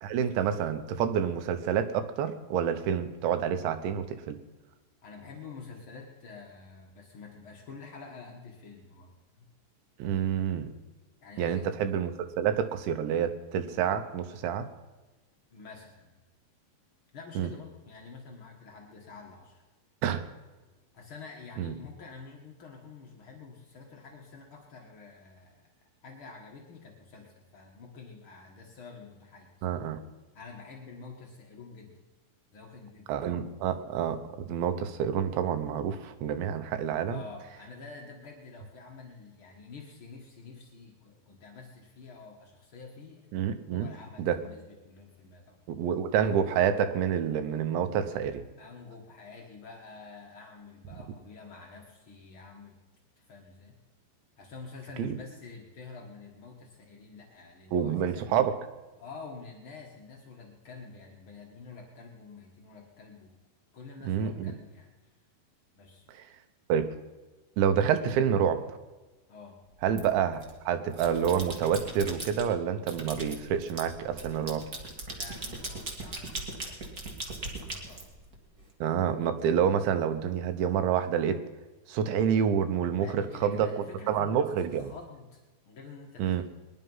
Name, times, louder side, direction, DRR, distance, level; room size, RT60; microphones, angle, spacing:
voice 1, 0.0-4.4 10.0-10.7 11.4-14.7 17.4-17.5 20.0-20.2 21.6-21.7 29.6-30.0 33.1-37.2 43.3-43.9 44.2-44.4 45.7-48.4 55.0-55.2 57.7-58.5 64.0-64.5 66.1-66.2 66.7-66.9 67.6-68.6 69.8-70.4 70.7-74.6 78.8-81.4 81.9-83.7 84.1-84.9 86.2-86.4, right 8 dB, 85° right, 9 dB, 3.3 m, -28 dB
voice 2, 5.0-9.5 11.2-11.7 15.5-16.1 17.1-19.6 20.9-25.7 26.0-29.5 30.3-32.0 32.5-33.3 37.1-43.3 43.7-45.9 48.6-52.8 53.2-53.8 54.4-58.3 59.0-63.4 63.7-64.9 65.7-66.1 69.3-69.6 75.1-78.1 82.9-85.4 85.6-86.4, left 4 dB, 90° left, 0 dB, 1.1 m, -48 dB
sound 1, 70.0-70.5 70.9-72.5 72.9-78.6, right 2 dB, 55° right, 0.9 m, -39 dB
20.5 x 11.0 x 5.6 m, 1.2 s
omnidirectional pair, 5.1 m